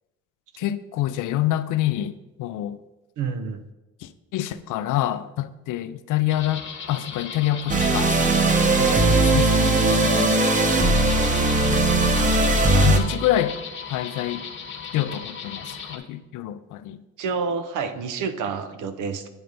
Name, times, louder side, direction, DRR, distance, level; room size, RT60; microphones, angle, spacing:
voice 1, 0.6-2.8 4.0-10.3 11.7-12.4 12.7-13.6 13.9-14.4 14.9-17.0, left 13 dB, 85° left, 0.5 m, -27 dB
voice 2, 3.2-3.6 17.2-19.3, right 5 dB, 80° right, 0.7 m, -28 dB
sound 1, 6.3-16.0, left 6 dB, 40° left, 1.0 m, -36 dB
sound 2, 7.7-13.0, right 2 dB, 25° right, 0.9 m, -19 dB
8.9 x 3.3 x 5.3 m
cardioid pair, 90°, 30 cm